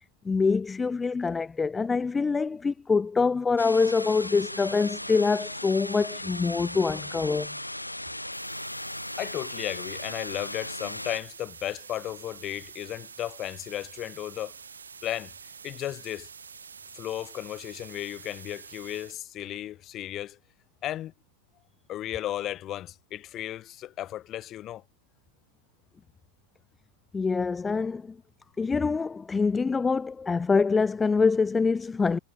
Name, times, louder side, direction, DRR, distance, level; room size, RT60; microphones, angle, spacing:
voice 1, 0.2-7.5 27.1-28.2 28.6-32.2, left 4 dB, 15° left, 0.7 m, -25 dB
sound 1, 3.6-11.2, left 1 dB, 85° left, 1.6 m, -37 dB
sound 2, 8.3-19.2, right 6 dB, 70° right, 4.5 m, -47 dB
voice 2, 9.2-14.5 15.0-15.3 15.6-16.3 16.9-20.4 20.8-21.1 21.9-24.8, left 13 dB, 30° left, 4.6 m, -35 dB
figure-of-eight pair, 90°, 0 cm